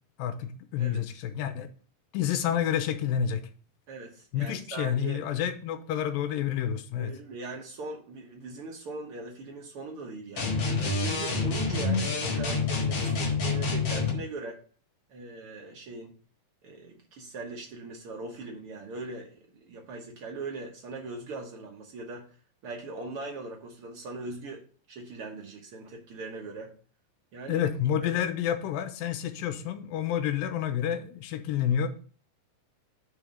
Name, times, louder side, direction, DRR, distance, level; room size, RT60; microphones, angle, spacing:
voice 1, 0.2-1.7 2.1-3.4 4.3-7.1 27.5-31.9, left 9 dB, 90° left, 9 dB, 2.4 m, -29 dB
voice 2, 3.9-5.2 7.0-14.6 15.1-16.1 16.6-22.3 22.6-24.6 24.9-26.7 27.3-27.7 28.0-28.1, right 3 dB, 65° right, 0 dB, 1.4 m, -40 dB
sound 1, 10.4-14.2, left 4 dB, 50° left, 1.4 m, -27 dB
5.4 x 4.9 x 6.3 m, 0.41 s
omnidirectional pair, 4.1 m